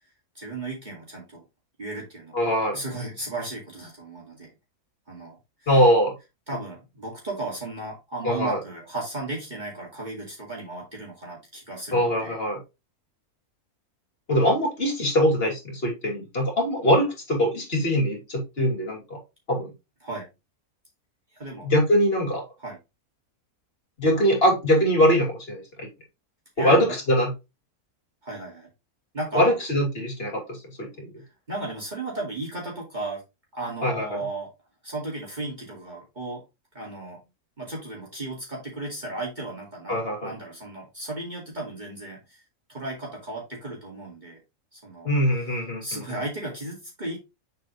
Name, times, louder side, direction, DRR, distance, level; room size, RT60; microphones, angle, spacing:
voice 1, 0.3-1.4 1.8-4.5 5.1-5.8 6.5-12.4 20.0-20.3 21.3-21.7 22.6-22.8 26.6-27.0 28.2-28.7 29.1-29.5 31.5-33.2 33.5-34.5 34.8-36.4 36.7-37.2 37.6-42.4 42.7-44.4 44.7-45.1 45.8-47.2, right 2 dB, 30° right, -3 dB, 2.3 m, -35 dB
voice 2, 2.3-2.8 5.7-6.1 8.2-8.6 11.9-12.6 14.3-19.2 19.5-19.7 21.6-22.4 24.0-25.9 26.6-27.3 29.3-31.1 33.8-34.2 39.9-40.3 45.0-46.2, equal, 40° left, 0 dB, 2.8 m, -22 dB
7.0 x 4.6 x 3.1 m, 0.25 s
omnidirectional pair, 1.6 m